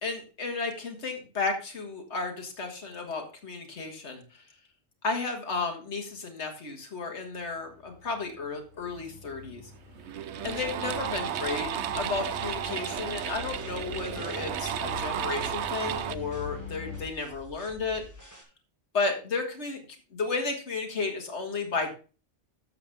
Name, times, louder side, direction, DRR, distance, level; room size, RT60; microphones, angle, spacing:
voice 1, 0.0-4.2 5.0-9.6 10.4-11.7 12.0-18.1 18.9-19.8 20.1-21.9, left 4 dB, 60° left, 3 dB, 2.1 m, -33 dB
sound 1, 7.4-17.0, left 6 dB, 40° left, 6.3 m, -44 dB
sound 2, 9.4-9.5 9.9-16.2, right 10 dB, 70° right, 0.9 m, -33 dB
sound 3, 10.4-18.4, left 1 dB, 15° right, 2.1 m, -50 dB
12.0 x 6.8 x 3.5 m, 0.35 s
omnidirectional pair, 1.3 m